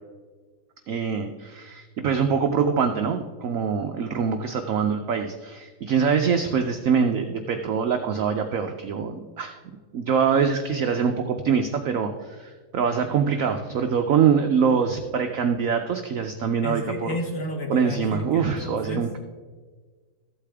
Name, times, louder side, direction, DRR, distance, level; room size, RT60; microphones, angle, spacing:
voice 1, 0.9-9.6 9.9-17.2 17.7-19.2, right 6 dB, 75° right, 6 dB, 0.7 m, -24 dB
voice 2, 16.6-19.1, left 1 dB, 50° left, 3 dB, 1.3 m, -32 dB
14.0 x 8.3 x 3.4 m, 1.5 s
omnidirectional pair, 2.1 m